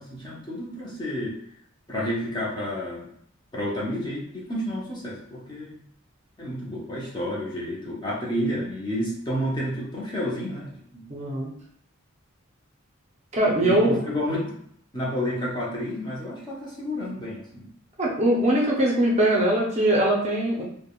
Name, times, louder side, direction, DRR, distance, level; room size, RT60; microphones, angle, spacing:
voice 1, 0.0-1.4 1.9-3.1 3.5-5.8 6.4-11.0 13.6-14.5 14.9-17.7, equal, 20° left, -5 dB, 0.6 m, -30 dB
voice 2, 11.1-11.5 13.3-14.0 18.0-20.6, right 1 dB, 30° right, -3 dB, 0.5 m, -21 dB
3.3 x 2.1 x 2.3 m, 0.66 s
head